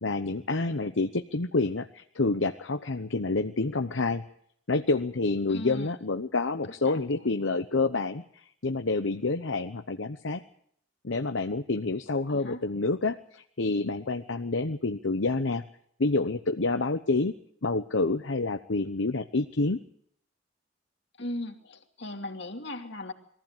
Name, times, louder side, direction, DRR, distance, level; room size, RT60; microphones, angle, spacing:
voice 1, 0.0-4.2 4.7-10.4 11.0-15.6 16.0-17.3 17.6-19.8, left 3 dB, 80° left, 7 dB, 1.0 m, -28 dB
voice 2, 5.5-5.9 6.8-7.0 12.3-12.6 21.2-23.1, left 1 dB, 60° left, 4 dB, 2.7 m, -37 dB
22.5 x 15.5 x 9.0 m, 0.67 s
head